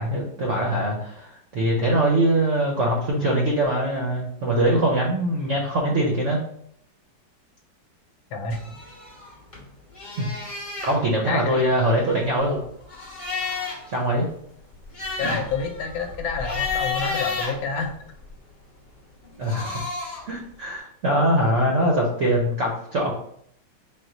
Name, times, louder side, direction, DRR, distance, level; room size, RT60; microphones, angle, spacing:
voice 1, 0.0-6.4 10.2-10.3 10.8-12.6 13.9-14.3 15.2-15.4 19.4-19.8 20.3-23.1, right 1 dB, 70° right, -1 dB, 0.7 m, -22 dB
sound 1, 8.5-9.6 9.9-11.0 11.8-13.9 14.3-14.4 14.7-18.3 19.2-20.3, left 4 dB, 25° left, 0.8 m, -32 dB
voice 2, 11.3-11.6 15.2-18.0, left 4 dB, 90° left, 5 dB, 1.4 m, -28 dB
4.3 x 2.1 x 3.8 m, 0.70 s
omnidirectional pair, 2.1 m